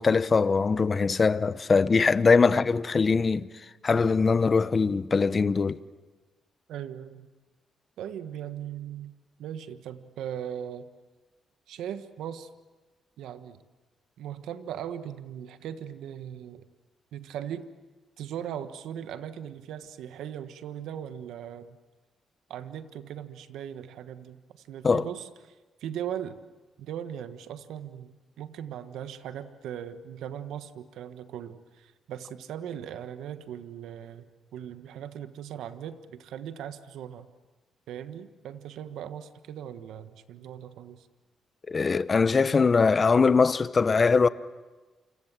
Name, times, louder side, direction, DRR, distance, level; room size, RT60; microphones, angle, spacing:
voice 1, 0.0-3.5 3.8-5.8 24.8-25.1 41.7-44.3, left 4 dB, 35° left, 0.9 m, -22 dB
voice 2, 6.7-7.3 8.0-10.9 11.7-12.5 13.2-13.6 14.2-16.7 17.1-17.7 18.2-21.8 22.5-25.5 25.8-26.4 26.8-37.3 37.9-41.1, right 9 dB, 90° right, 1.4 m, -39 dB
29.0 x 26.5 x 7.6 m
cardioid pair, 95°, 0 cm